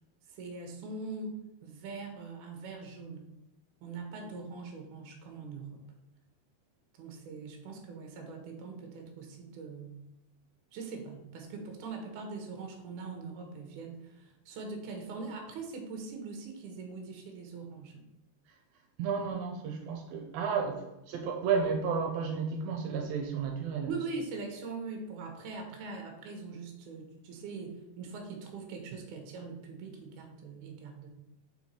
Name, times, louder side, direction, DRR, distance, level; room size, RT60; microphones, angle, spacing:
voice 1, 0.3-3.3 3.8-5.9 6.9-10.0 10.7-18.1 23.8-31.1, right 4 dB, 70° right, 3 dB, 2.3 m, -42 dB
voice 2, 19.0-23.9, right 6 dB, 85° right, 2 dB, 2.5 m, -32 dB
6.0 x 4.5 x 4.4 m, 0.92 s
omnidirectional pair, 4.2 m